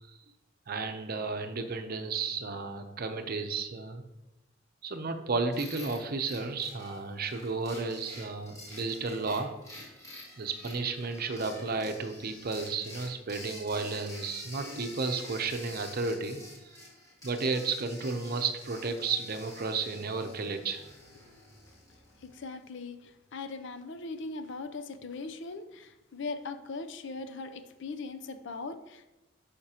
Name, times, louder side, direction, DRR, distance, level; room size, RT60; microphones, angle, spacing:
voice 1, 0.7-4.0 4.8-9.5 10.4-16.4 17.2-20.8, right 4 dB, 50° right, 7 dB, 0.7 m, -33 dB
sound 1, 5.5-22.5, left 1 dB, 15° left, 2.1 m, -49 dB
voice 2, 22.2-29.1, left 3 dB, 65° left, 9 dB, 0.6 m, -40 dB
11.5 x 5.1 x 2.9 m, 0.99 s
head